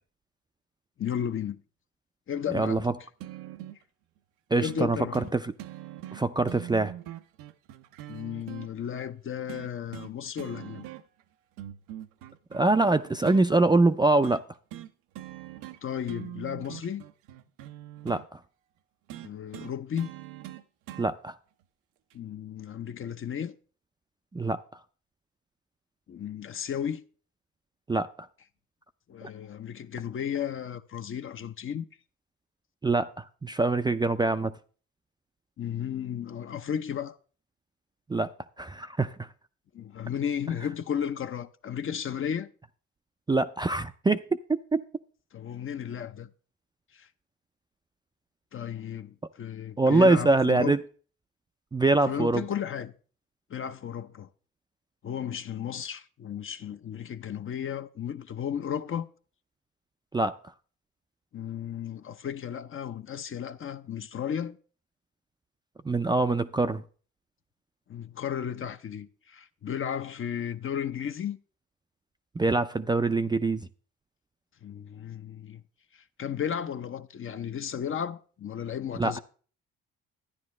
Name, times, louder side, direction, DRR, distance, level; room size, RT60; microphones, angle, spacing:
voice 1, 1.0-1.6 2.3-2.9 4.6-5.3 8.1-10.9 15.8-17.0 19.2-20.1 22.1-23.5 26.1-27.0 29.1-31.9 35.6-37.2 39.7-42.5 45.3-46.3 46.9-47.1 48.5-50.8 52.0-52.9 53.5-54.3 55.0-59.1 61.3-64.6 67.9-71.4 74.6-75.6 76.2-79.2, left 8 dB, 40° left, 0.7 m, -34 dB
voice 2, 2.5-2.9 4.5-5.5 6.1-6.9 12.5-14.4 18.0-18.4 21.0-21.3 24.3-24.6 27.9-28.1 32.8-34.5 38.1-38.3 38.6-39.3 43.3-44.2 44.7-44.8 49.8-50.8 51.7-52.4 60.1-60.4 65.8-66.8 72.4-73.7 79.0-79.2, right 3 dB, 15° right, 0.4 m, -24 dB
sound 1, 3.2-3.8 4.7-4.9 5.1-5.3 5.6-8.7 9.5-10.1 10.4-11.2 11.6-13.4 14.2-14.4 14.7-14.9 15.2-15.8 16.1-18.3 19.1-21.1 22.1-22.2, right 13 dB, 90° right, 0.6 m, -42 dB
12.0 x 9.7 x 3.2 m
supercardioid pair, 70°, 32 cm